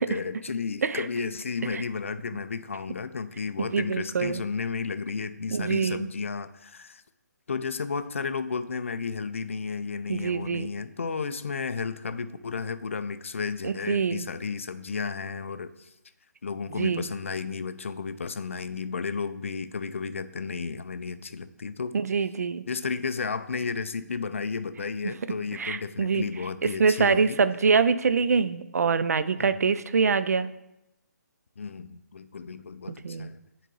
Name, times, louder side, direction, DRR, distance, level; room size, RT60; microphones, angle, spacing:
voice 1, 0.0-7.0 7.5-15.9 16.4-22.0 22.7-27.4 29.4-29.6 31.6-33.4, left 5 dB, 45° left, 12 dB, 0.4 m, -33 dB
voice 2, 3.7-4.4 5.5-6.1 10.1-10.7 13.6-14.2 16.7-17.1 21.9-22.6 25.5-26.2 26.6-30.5 33.0-33.3, right 5 dB, 60° right, 14 dB, 0.4 m, -25 dB
9.3 x 3.9 x 3.9 m, 0.90 s
hypercardioid pair, 175°, 10 cm